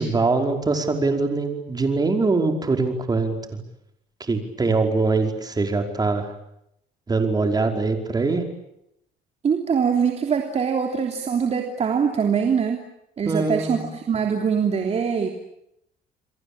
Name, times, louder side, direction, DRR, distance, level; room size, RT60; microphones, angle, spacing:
voice 1, 0.0-3.4 4.2-6.3 7.1-8.4 13.3-13.9, right 3 dB, 25° right, 5 dB, 5.2 m, -23 dB
voice 2, 9.4-12.8 13.2-15.3, right 6 dB, 40° right, 4 dB, 3.2 m, -23 dB
29.5 x 23.0 x 8.9 m, 0.80 s
cardioid pair, 110°, 17 cm